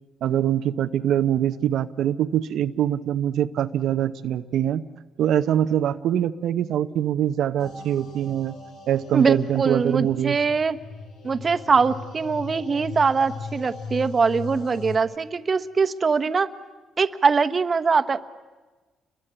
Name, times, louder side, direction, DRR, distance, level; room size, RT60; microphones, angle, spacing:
voice 1, 0.2-4.8 5.2-8.6 8.9-10.4, right 10 dB, 75° right, 8 dB, 0.8 m, -23 dB
sound 1, 7.6-15.0, left 4 dB, 75° left, 4.4 m, -39 dB
voice 2, 9.1-10.8 11.2-16.5 17.0-18.2, right 5 dB, 35° right, 11 dB, 1.2 m, -22 dB
29.0 x 22.0 x 8.9 m, 1.3 s
cardioid pair, 90°, 0 cm